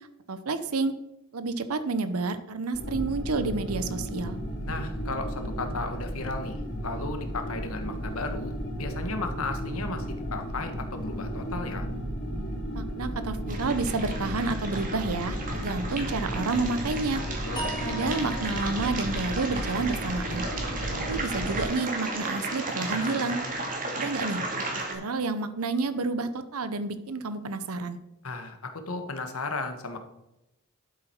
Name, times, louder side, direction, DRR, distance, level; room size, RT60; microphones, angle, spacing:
voice 1, 0.3-0.9 1.3-4.4 12.7-17.2 17.8-20.4 21.1-23.4 23.9-24.6 24.9-28.0, right 3 dB, 80° right, 11 dB, 0.9 m, -30 dB
sound 1, 2.7-21.6, equal, 50° left, 3.9 m, -34 dB
voice 2, 4.6-11.8 17.5-17.7 28.2-30.0, left 3 dB, 70° left, 6 dB, 1.5 m, -35 dB
sound 2, 13.5-24.9, right 2 dB, 40° right, 2.4 m, -34 dB
sound 3, 17.6-20.7, equal, 20° left, 2.6 m, -41 dB
11.5 x 8.1 x 4.5 m, 0.91 s
head